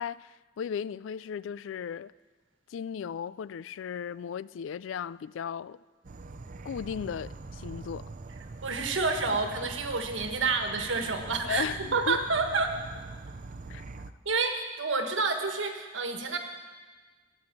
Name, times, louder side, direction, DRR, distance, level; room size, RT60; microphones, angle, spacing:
voice 1, 0.0-2.1 2.7-5.8 6.6-8.1 11.4-12.2 13.7-13.8, left 7 dB, 85° left, 0.3 m, -36 dB
Insect / Frog, 6.0-14.1, right 3 dB, 45° right, 0.5 m, -43 dB
voice 2, 8.6-12.7 14.2-16.4, right 4 dB, 85° right, 1.5 m, -29 dB
13.5 x 7.8 x 9.0 m
head